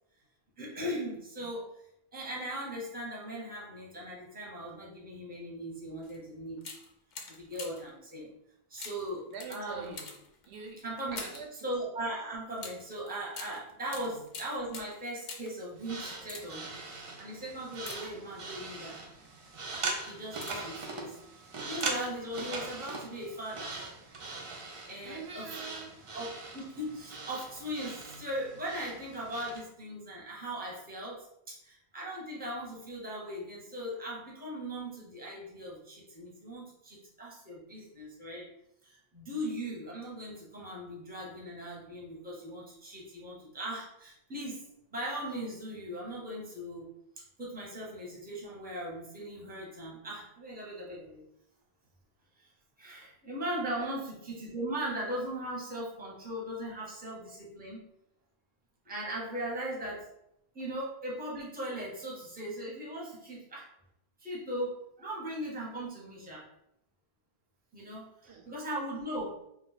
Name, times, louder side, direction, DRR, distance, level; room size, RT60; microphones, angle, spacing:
voice 1, 0.6-1.7 2.1-6.7 7.3-8.3 8.7-9.9 10.8-11.2 11.6-19.0 20.1-21.2 21.6-23.8 24.9-25.5 26.1-38.5 38.8-46.9 47.2-51.2 52.4-52.5 52.8-57.8 58.8-60.1 60.5-63.7 64.2-66.4 67.7-69.5, right 1 dB, 10° right, -4 dB, 0.7 m, -39 dB
sound 1, 6.0-6.2 6.6-8.0 8.8-11.6 12.6-15.6 16.1-16.8 17.7-18.6 19.2-19.5 20.0-20.8 21.7-22.2 22.4-22.5, left 4 dB, 55° left, 0.5 m, -46 dB
voice 2, 9.3-10.1 10.4-10.8 11.1-11.7 13.9-14.3 25.0-26.0 53.8-54.0 68.3-68.5, right 5 dB, 85° right, 3 dB, 0.8 m, -44 dB
sound 2, 15.8-29.6, right 3 dB, 50° right, 0.4 m, -41 dB
2.3 x 2.2 x 3.9 m, 0.79 s
omnidirectional pair, 1.1 m